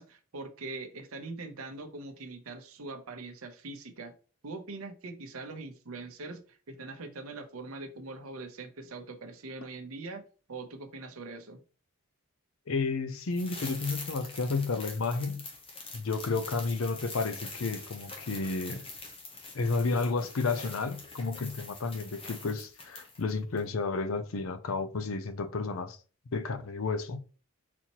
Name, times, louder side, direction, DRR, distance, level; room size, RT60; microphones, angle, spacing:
voice 1, 0.0-4.1 4.4-10.2 10.5-11.6, right 3 dB, 80° right, 0.8 m, -42 dB
voice 2, 12.7-15.4 15.9-18.8 19.5-26.0 26.3-27.2, left 4 dB, 70° left, 0.6 m, -31 dB
sound 1, 13.3-23.3 23.6-23.7, left 3 dB, 25° left, 0.8 m, -44 dB
4.2 x 4.2 x 2.9 m
head